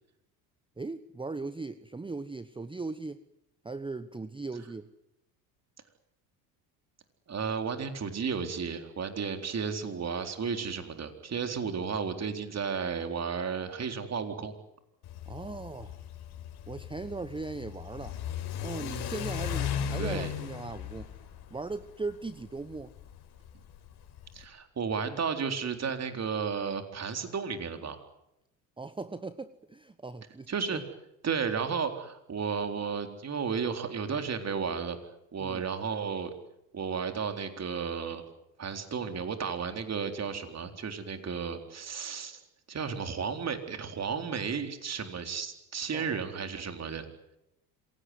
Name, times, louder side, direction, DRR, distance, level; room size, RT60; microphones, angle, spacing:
voice 1, 0.8-3.2 3.6-4.9 15.3-16.0 16.7-18.2 18.6-21.1 21.5-22.9 28.8-30.8 31.6-31.7 35.4-35.6 45.9-46.2, right 3 dB, 10° right, 14 dB, 1.0 m, -38 dB
voice 2, 7.3-14.5 20.0-20.3 24.3-28.0 30.5-30.8 31.2-35.0 35.3-36.3 36.7-38.2 38.6-42.4 42.7-47.1, right 6 dB, 35° right, 7 dB, 4.1 m, -33 dB
Car / Accelerating revving vroom, 15.0-24.4, left 9 dB, 60° left, 4.3 m, -37 dB
27.0 x 18.0 x 9.6 m, 0.86 s
hypercardioid pair, 75°, 45 cm